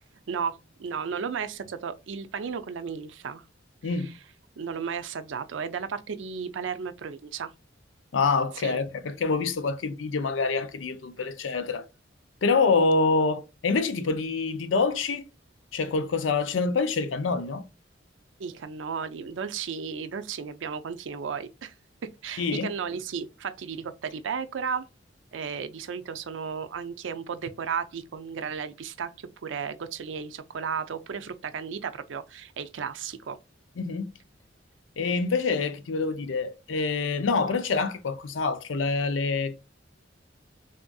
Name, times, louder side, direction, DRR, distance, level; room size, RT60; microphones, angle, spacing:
voice 1, 0.3-3.4 3.8-4.1 4.6-7.5 8.6-8.8 18.4-21.7 22.2-24.8 25.3-33.4, right 6 dB, 75° right, 0.4 m, -34 dB
voice 2, 8.1-11.8 12.4-15.2 15.7-17.6 22.4-22.7 33.8-34.1 35.0-39.6, left 4 dB, 90° left, 0.5 m, -26 dB
3.4 x 2.6 x 2.2 m
head